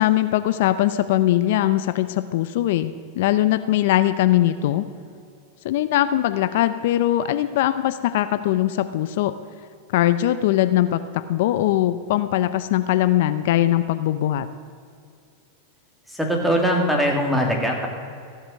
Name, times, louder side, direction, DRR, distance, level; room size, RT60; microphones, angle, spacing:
voice 1, 0.0-4.9 5.6-9.3 9.9-14.5, left 13 dB, 65° left, 12 dB, 0.5 m, -21 dB
voice 2, 16.1-17.9, equal, 5° right, 1 dB, 2.5 m, -21 dB
15.5 x 8.0 x 6.5 m, 2.3 s
hypercardioid pair, 110°, 0 cm